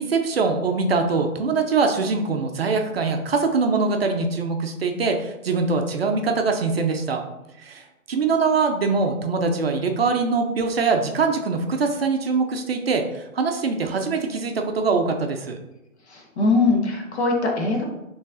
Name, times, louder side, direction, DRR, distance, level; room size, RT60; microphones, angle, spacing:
voice 1, 0.0-7.2 7.6-7.8 8.1-15.6, right 4 dB, 50° right, 4 dB, 0.5 m, -23 dB
voice 2, 16.1-17.8, left 3 dB, 55° left, 1 dB, 1.1 m, -21 dB
5.2 x 3.1 x 2.5 m, 0.93 s
hypercardioid pair, 145°, 40 cm